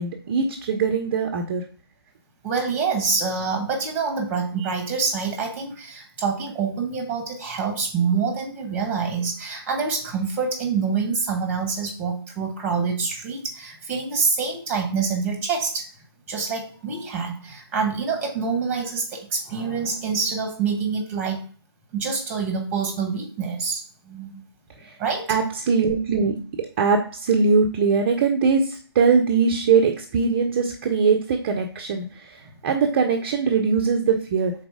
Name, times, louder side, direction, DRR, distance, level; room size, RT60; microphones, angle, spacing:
voice 1, 0.0-1.6 24.8-25.0 25.3-34.5, right 5 dB, 30° right, 4 dB, 0.6 m, -21 dB
voice 2, 2.4-15.9 16.3-21.5 21.9-24.4 25.0-25.3, right 5 dB, 10° right, 3 dB, 1.3 m, -26 dB
5.0 x 4.0 x 4.9 m, 0.43 s
figure-of-eight pair, 145°, 13 cm